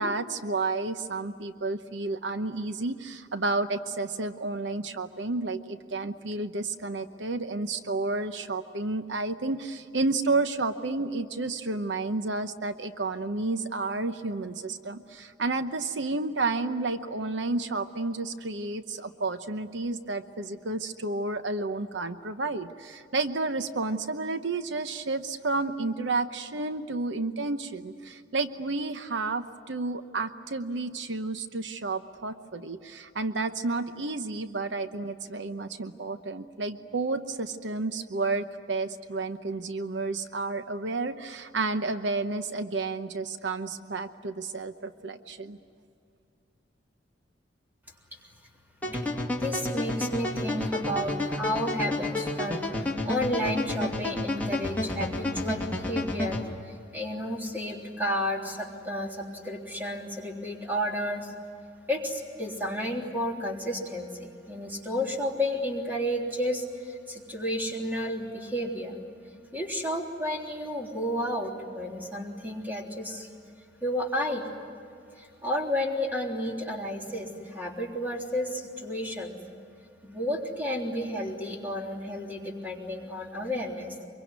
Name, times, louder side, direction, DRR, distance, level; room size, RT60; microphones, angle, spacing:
voice 1, 0.0-45.6, right 3 dB, 80° right, 9 dB, 0.9 m, -31 dB
sound 1, 48.8-56.4, left 2 dB, 10° left, 2.5 m, -30 dB
voice 2, 49.4-56.4 56.6-61.3 61.9-69.0 69.5-73.3 73.8-74.5 75.2-79.4 80.0-84.0, equal, 10° right, 0 dB, 3.5 m, -32 dB
25.0 x 23.0 x 9.6 m, 2.4 s
head